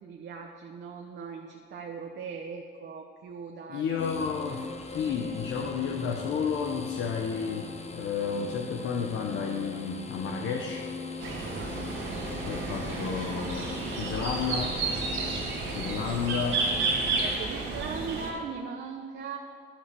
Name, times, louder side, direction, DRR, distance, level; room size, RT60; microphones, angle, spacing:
voice 1, 0.0-4.2 11.5-11.8 17.2-19.4, right 5 dB, 60° right, 1 dB, 1.1 m, -39 dB
voice 2, 3.7-4.6 4.9-10.8 12.4-13.7 14.0-14.8 15.7-16.7, left 6 dB, 80° left, 1 dB, 1.0 m, -31 dB
sound 1, 4.0-17.3, left 4 dB, 35° left, 1.0 m, -40 dB
sound 2, 11.2-18.3, right 3 dB, 80° right, 2.2 m, -31 dB
11.0 x 6.6 x 7.6 m, 2.1 s
cardioid pair, 90°, 20 cm